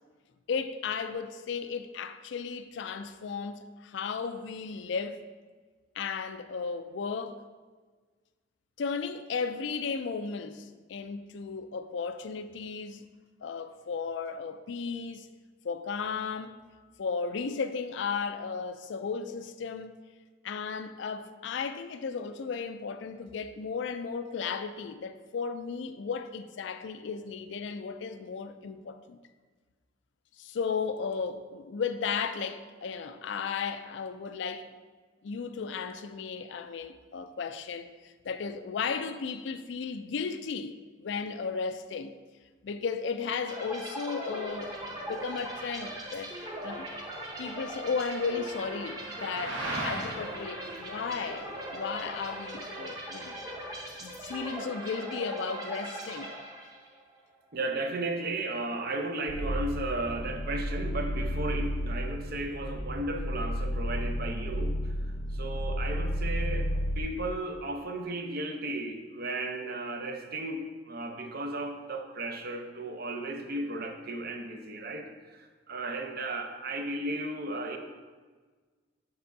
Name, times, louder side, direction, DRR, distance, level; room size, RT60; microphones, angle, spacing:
voice 1, 0.5-5.2 6.0-7.4 8.8-13.1 13.4-15.3 15.6-16.6 17.0-19.9 20.4-29.2 30.4-34.7 35.2-42.1 42.6-44.7 45.0-46.3 46.6-46.9 47.4-53.4 54.0-56.3, left 5 dB, 65° left, 0.4 m, -35 dB
sound 1, 43.5-57.0, right 1 dB, 20° right, 0.9 m, -40 dB
sound 2, 44.5-54.4, right 1 dB, 80° right, 1.5 m, -42 dB
voice 2, 57.5-77.8, right 2 dB, 50° right, 0.6 m, -35 dB
sound 3, 59.3-67.0, equal, 85° left, 0.8 m, -32 dB
6.9 x 6.8 x 2.6 m
head